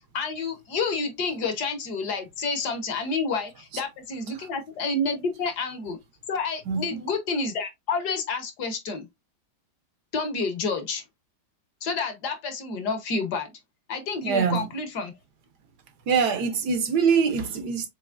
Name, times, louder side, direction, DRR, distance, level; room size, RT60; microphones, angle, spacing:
voice 1, 0.1-6.0 6.3-9.1 10.1-11.0 11.8-13.5 13.9-15.1, left 4 dB, 65° left, 1.5 m, -29 dB
voice 2, 6.6-7.0 14.2-14.8 16.1-17.9, right 6 dB, 70° right, 1.2 m, -24 dB
6.9 x 2.9 x 2.4 m
omnidirectional pair, 2.0 m